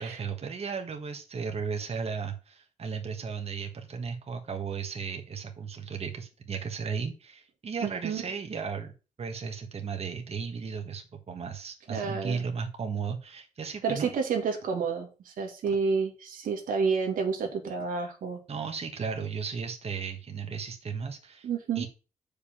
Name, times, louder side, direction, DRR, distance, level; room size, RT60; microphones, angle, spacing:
voice 1, 0.0-8.9 9.2-14.1 18.5-21.5 21.7-21.9, right 5 dB, 50° right, 5 dB, 1.5 m, -35 dB
voice 2, 7.8-8.2 11.9-12.4 13.8-18.4 21.4-21.9, right 5 dB, 85° right, 3 dB, 1.9 m, -30 dB
6.7 x 5.2 x 7.1 m, 0.33 s
cardioid pair, 85°, 14 cm